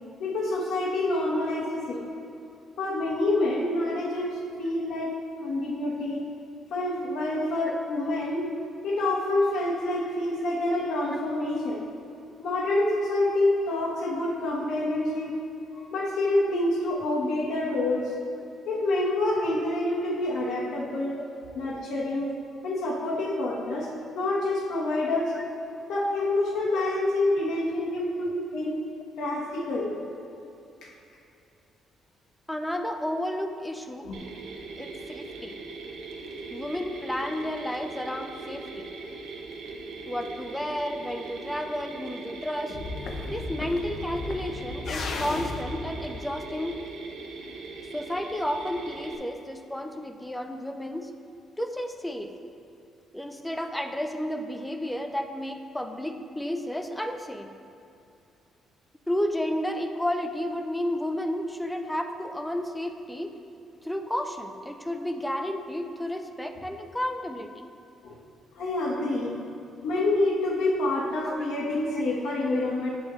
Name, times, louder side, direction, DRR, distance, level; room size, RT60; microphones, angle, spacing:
voice 1, 0.2-2.0 2.8-5.1 5.4-6.2 6.7-8.5 8.8-11.8 12.4-15.3 15.7-18.1 18.7-21.2 21.5-22.4 22.6-23.9 24.1-25.3 25.9-28.7 29.2-30.0 30.8-30.9 34.0-34.2 68.0-68.1 68.6-69.3 69.8-72.9, left 2 dB, 75° left, -4 dB, 1.2 m, -27 dB
voice 2, 32.5-34.1 34.8-35.6 36.5-38.9 40.1-42.8 43.3-46.8 47.9-51.1 51.6-52.3 53.1-57.5 59.1-63.3 63.8-67.6 70.4-70.8 71.2-71.4 72.5-72.6, left 1 dB, 5° left, 5 dB, 0.4 m, -32 dB
Mechanisms, 34.1-49.2, right 3 dB, 85° right, 0.8 m, -40 dB
sound 1, 42.7-47.0, left 3 dB, 55° left, 0.6 m, -35 dB
8.5 x 6.3 x 3.1 m, 2.7 s
cardioid pair, 135°, 0 cm